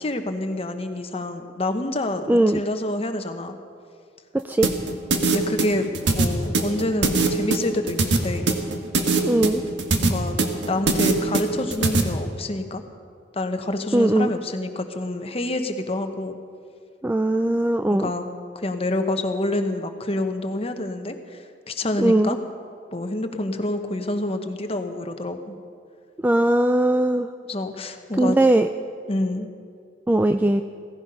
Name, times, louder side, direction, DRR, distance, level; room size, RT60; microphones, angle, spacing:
voice 1, 0.0-3.6 5.3-8.5 10.0-10.3 10.7-12.8 13.3-16.3 17.9-18.3 18.5-22.4 22.9-25.6 27.4-28.4 29.1-29.5, left 2 dB, 35° left, 7 dB, 1.1 m, -27 dB
voice 2, 2.3-2.6 4.4-4.7 9.2-9.6 13.9-14.3 17.0-18.1 22.0-22.4 26.2-27.3 28.2-28.7 30.1-30.6, right 1 dB, 10° right, 7 dB, 0.3 m, -19 dB
sound 1, 4.6-12.0, right 3 dB, 85° right, 1.5 m, -21 dB
16.5 x 15.0 x 5.5 m, 2.2 s
head